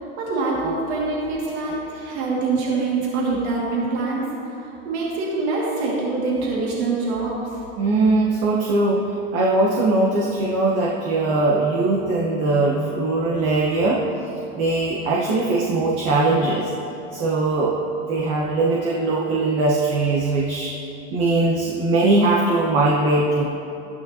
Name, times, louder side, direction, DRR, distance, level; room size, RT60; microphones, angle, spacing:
voice 1, 0.2-4.3 4.6-7.4, right 3 dB, 75° right, -5 dB, 2.4 m, -24 dB
voice 2, 7.8-14.0 14.5-16.7 17.1-20.7 21.1-23.4, right 2 dB, 50° right, -3 dB, 1.3 m, -20 dB
12.5 x 10.0 x 2.9 m, 2.9 s
supercardioid pair, 135°, 33 cm